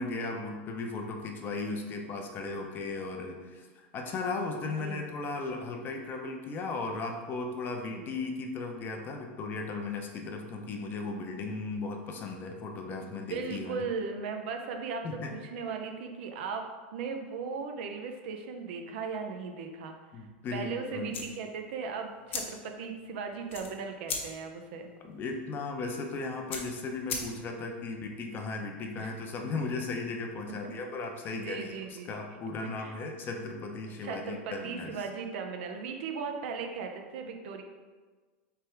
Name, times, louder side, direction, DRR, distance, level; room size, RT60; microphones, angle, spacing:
voice 1, 0.0-13.8 15.0-15.3 20.1-21.3 25.0-35.0, left 3 dB, 35° left, 3 dB, 0.7 m, -36 dB
voice 2, 13.3-20.0 20.5-24.9 29.0-29.1 30.5-30.7 31.4-32.1 32.6-33.0 34.0-37.6, right 5 dB, 70° right, 4 dB, 0.6 m, -37 dB
sound 1, 21.1-27.7, left 4 dB, 85° left, 0.9 m, -41 dB
3.4 x 3.4 x 4.4 m, 1.4 s
supercardioid pair, 120°, 6 cm